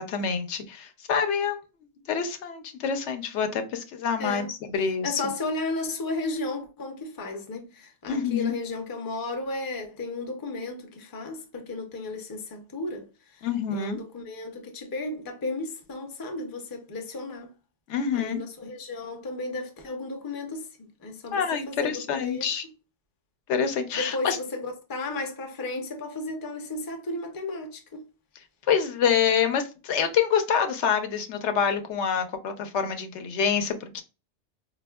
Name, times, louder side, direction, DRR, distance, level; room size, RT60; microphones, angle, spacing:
voice 1, 0.0-1.6 2.1-5.2 8.1-8.5 13.4-14.0 17.9-18.4 21.3-22.6 23.5-24.4 28.7-34.0, left 7 dB, 85° left, 0.9 m, -26 dB
voice 2, 4.2-4.5 5.0-17.5 18.1-20.7 21.0-22.4 23.9-28.0, left 2 dB, 30° left, 0.4 m, -34 dB
4.2 x 2.3 x 2.2 m
omnidirectional pair, 1.1 m